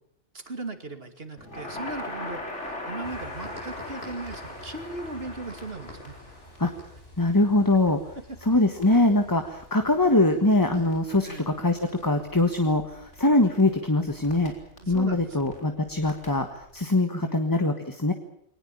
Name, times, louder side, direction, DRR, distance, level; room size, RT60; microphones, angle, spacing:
voice 1, 0.3-6.2 11.2-11.5 14.8-15.4 17.2-17.5, right 2 dB, 60° right, 7 dB, 2.8 m, -38 dB
Crackle, 1.4-16.8, left 1 dB, 90° left, 5.0 m, -42 dB
sound 1, 3.0-14.2, left 1 dB, 60° left, 8.1 m, -49 dB
voice 2, 7.2-8.0 8.4-14.5 14.9-18.1, left 2 dB, 15° left, 6 dB, 1.5 m, -23 dB
23.0 x 19.5 x 8.7 m, 0.70 s
omnidirectional pair, 1.2 m